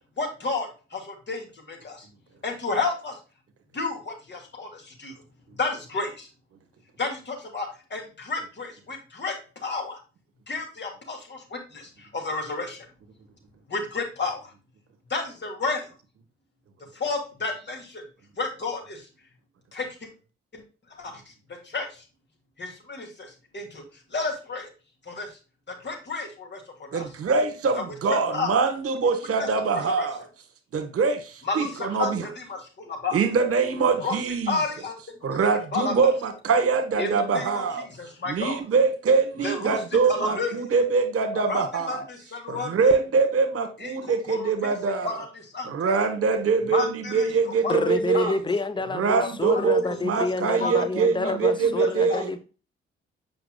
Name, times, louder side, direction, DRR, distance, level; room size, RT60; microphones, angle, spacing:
voice 1, 0.1-2.1 2.4-3.2 3.7-5.2 5.5-6.3 7.0-10.0 10.5-12.9 13.6-14.5 15.1-15.9 16.9-18.0 18.4-19.3 19.7-20.1 20.5-22.1 22.6-24.7 25.0-25.4 25.7-27.2 27.7-28.6 29.0-30.1 31.4-33.2 33.9-34.2 34.5-36.1 37.0-38.6 39.4-40.7 41.3-43.0 43.8-46.0 46.6-47.9 48.1-48.4 49.2-50.8 51.2-51.3 51.6-52.2, left 3 dB, 35° left, 2.5 m, -32 dB
voice 2, 26.9-30.2 30.7-32.2 33.1-34.5 35.2-37.8 38.3-42.0 42.5-45.2 45.7-46.8 47.1-48.4 48.9-52.3, right 4 dB, 45° right, 1.4 m, -23 dB
voice 3, 47.7-52.4, left 3 dB, 15° left, 0.8 m, -28 dB
7.7 x 5.5 x 2.4 m
figure-of-eight pair, 40°, 31 cm